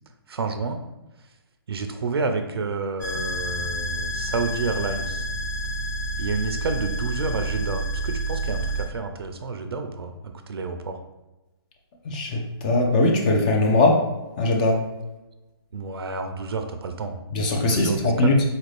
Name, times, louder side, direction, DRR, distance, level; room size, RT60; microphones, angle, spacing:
voice 1, 0.3-0.8 1.7-5.3 6.2-11.0 15.7-17.2 17.7-18.4, right 4 dB, 75° right, 7 dB, 0.4 m, -29 dB
sound 1, 3.0-8.8, right 1 dB, 45° left, 1.2 m, -29 dB
voice 2, 12.1-14.0 14.4-14.8 17.3-18.4, left 2 dB, 20° left, 1 dB, 0.4 m, -20 dB
4.0 x 2.5 x 3.2 m, 1.1 s
hypercardioid pair, 155°, 13 cm